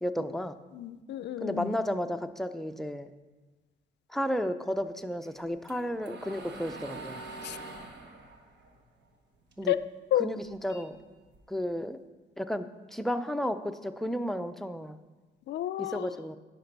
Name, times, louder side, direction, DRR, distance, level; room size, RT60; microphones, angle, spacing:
voice 1, 0.0-0.6 1.4-3.1 4.1-7.2 9.6-9.7 10.2-11.0 11.5-12.0 12.4-15.0 15.8-16.4, equal, ahead, 8 dB, 0.4 m, -33 dB
voice 2, 0.7-1.7 7.4-7.6 9.7-10.3 15.5-16.1, left 12 dB, 60° left, 15 dB, 0.4 m, -31 dB
swithon-pc, 5.2-9.8 10.1-11.7, right 2 dB, 65° right, 1.3 m, -45 dB
10.0 x 5.2 x 5.3 m, 1.2 s
cardioid pair, 90°, 20 cm